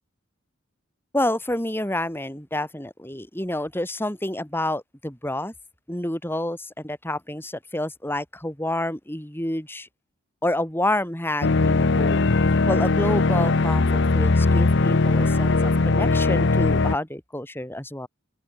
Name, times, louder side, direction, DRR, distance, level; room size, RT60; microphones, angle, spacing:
voice 1, 1.1-5.5 5.9-9.9 10.4-12.3 12.7-18.1, left 1 dB, 10° left, 4.9 m, -28 dB
sound 1, 11.4-17.0, left 3 dB, 60° left, 0.8 m, -20 dB
open air
head